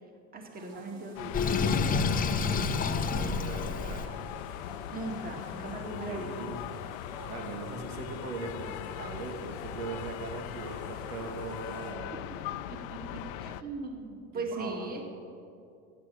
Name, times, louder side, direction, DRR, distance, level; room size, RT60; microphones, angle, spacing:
voice 1, 0.3-1.5 4.9-6.5 12.3-12.4 12.7-15.0, right 2 dB, 20° right, 2 dB, 2.2 m, -39 dB
sound 1, 0.5-11.9, right 1 dB, 60° right, 4.2 m, -51 dB
sound 2, 1.2-13.6, left 12 dB, 70° left, 0.7 m, -40 dB
Sink (filling or washing), 1.3-4.1, left 5 dB, 20° left, 0.7 m, -28 dB
voice 2, 3.0-4.0 6.0-6.6 7.3-12.2 14.3-14.9, right 4 dB, 80° right, 4 dB, 2.1 m, -40 dB
14.0 x 9.3 x 7.9 m, 2.5 s
supercardioid pair, 125°, 43 cm